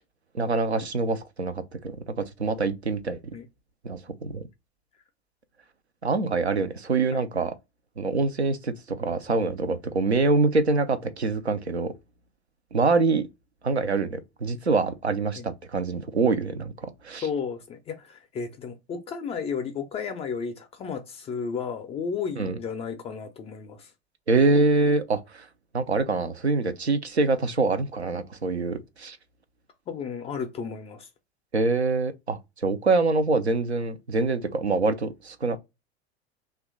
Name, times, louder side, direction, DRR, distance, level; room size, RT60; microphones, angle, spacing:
voice 1, 0.3-3.2 3.8-4.4 6.0-7.5 8.0-11.9 12.7-13.3 13.6-17.3 22.4-22.6 24.3-25.5 25.7-29.2 31.5-35.6, right 3 dB, 90° right, 0.5 m, -25 dB
voice 2, 17.2-23.9 29.9-31.1, left 6 dB, 20° left, 0.4 m, -33 dB
2.9 x 2.3 x 3.5 m
figure-of-eight pair, 80°, 32 cm